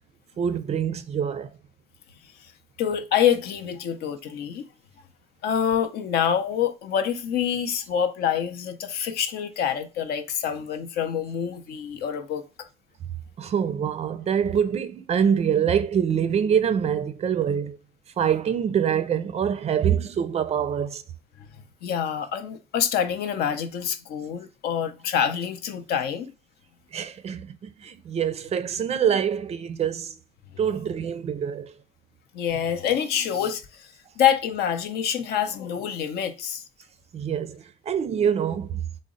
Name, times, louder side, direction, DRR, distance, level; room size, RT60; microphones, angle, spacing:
voice 1, 0.4-1.6 13.4-17.8 18.2-21.0 26.9-30.2 30.6-31.8 37.1-38.8, right 8 dB, 40° right, 0.4 m, -25 dB
voice 2, 2.8-4.7 5.4-12.4 21.4-26.3 32.3-36.6, left 8 dB, 70° left, 0.6 m, -26 dB
3.8 x 2.0 x 3.7 m
cardioid pair, 110°, 17 cm